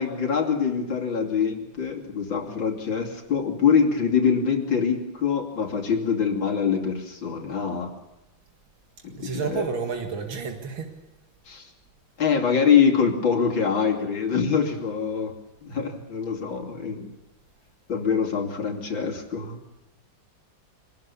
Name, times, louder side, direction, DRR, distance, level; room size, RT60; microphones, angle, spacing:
voice 1, 0.0-7.9 9.0-9.7 11.5-11.7 12.2-15.3 15.6-17.1 17.9-19.6, left 6 dB, 75° left, 2 dB, 3.5 m, -24 dB
voice 2, 9.2-10.9, right 5 dB, 85° right, 3 dB, 2.7 m, -30 dB
25.0 x 20.0 x 7.0 m, 0.89 s
omnidirectional pair, 2.1 m